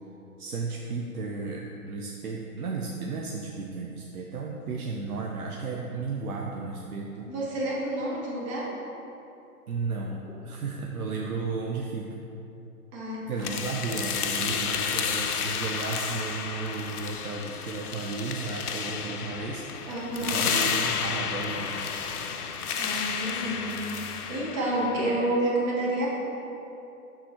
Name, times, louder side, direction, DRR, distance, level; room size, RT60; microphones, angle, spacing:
voice 1, 0.4-7.3 9.7-12.1 13.3-19.7 20.2-21.8, right 4 dB, 70° right, -1 dB, 0.7 m, -34 dB
voice 2, 7.3-8.7 12.9-13.5 19.9-20.4 22.3-22.5 22.8-26.1, right 1 dB, 20° right, -6 dB, 1.0 m, -30 dB
sound 1, 13.4-25.4, left 6 dB, 75° left, 0.6 m, -31 dB
6.3 x 3.7 x 4.3 m, 2.9 s
figure-of-eight pair, 145°, 46 cm